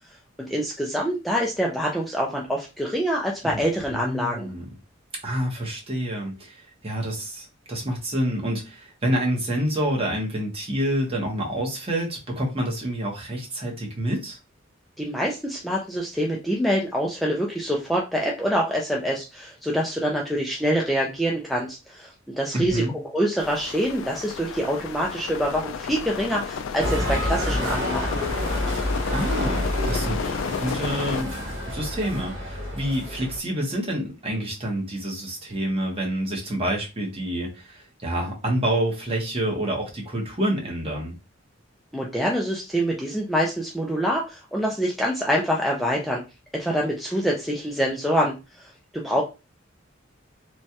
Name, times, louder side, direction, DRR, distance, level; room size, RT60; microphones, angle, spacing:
voice 1, 0.4-4.5 15.0-28.2 41.9-46.2 46.5-49.2, equal, ahead, 0.4 m, -25 dB
voice 2, 3.9-4.7 5.2-14.4 22.5-22.9 29.1-41.1, right 1 dB, 30° right, 1.0 m, -28 dB
sound 1, 23.4-31.2, left 6 dB, 75° left, 0.3 m, -32 dB
sound 2, 26.8-33.4, left 1 dB, 70° right, 1.5 m, -28 dB
3.1 x 2.2 x 2.8 m
head